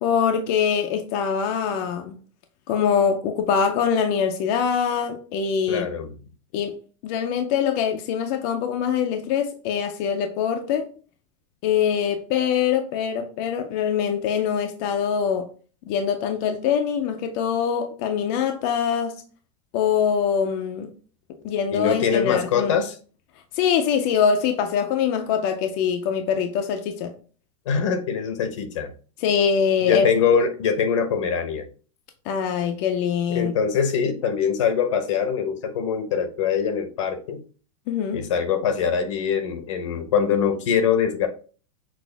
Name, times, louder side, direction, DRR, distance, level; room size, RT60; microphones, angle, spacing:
voice 1, 0.0-2.2 2.7-5.9 6.5-6.8 7.0-10.9 11.6-15.5 15.9-19.2 19.7-20.9 21.4-22.8 23.5-27.1 29.2-30.1 32.3-33.5 37.9-38.2, left 7 dB, 35° left, 0.4 m, -23 dB
voice 2, 5.7-6.1 21.7-22.9 27.7-28.9 29.8-31.6 33.3-37.4 38.1-41.3, left 7 dB, 75° left, 0.9 m, -23 dB
6.1 x 2.5 x 3.3 m
supercardioid pair, 180°, 16 cm